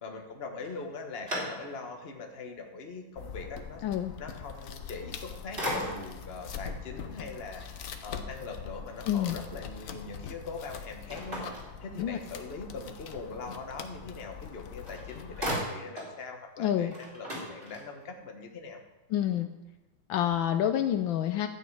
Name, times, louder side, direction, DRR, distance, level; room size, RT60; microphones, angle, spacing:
voice 1, 0.0-3.8 4.2-11.5 11.8-18.8, left 4 dB, 35° left, 3 dB, 1.3 m, -42 dB
sound 1, 0.6-2.0 2.6-2.7 4.9-5.2 5.6-6.3 11.1-12.4 14.5-14.6 14.9-16.2 16.5-16.6 16.9-18.1, equal, 25° right, 3.1 m, -37 dB
sound 2, 3.1-15.5, left 7 dB, 60° left, 0.9 m, -43 dB
voice 2, 9.1-9.4 12.0-12.2 16.6-16.9 19.1-19.5 20.1-21.5, left 10 dB, 75° left, 7 dB, 1.3 m, -28 dB
12.5 x 9.0 x 4.7 m, 0.99 s
omnidirectional pair, 2.2 m